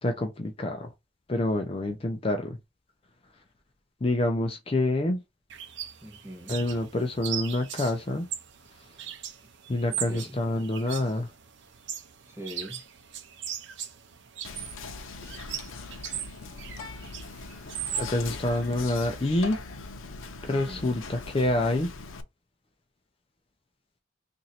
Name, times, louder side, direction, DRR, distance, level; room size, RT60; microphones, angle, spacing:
voice 1, 0.0-0.9 1.3-2.6 4.0-5.2 6.5-8.3 9.7-11.3 18.0-19.6 20.5-21.9, left 2 dB, 30° left, 0.4 m, -27 dB
sound 1, 5.5-19.2, right 10 dB, 65° right, 0.6 m, -39 dB
voice 2, 6.0-6.6 9.8-10.4 12.2-12.8 20.4-21.0, equal, 10° right, 1.3 m, -42 dB
Whispering, 14.5-22.2, left 3 dB, 90° left, 0.6 m, -40 dB
3.0 x 2.6 x 4.1 m
head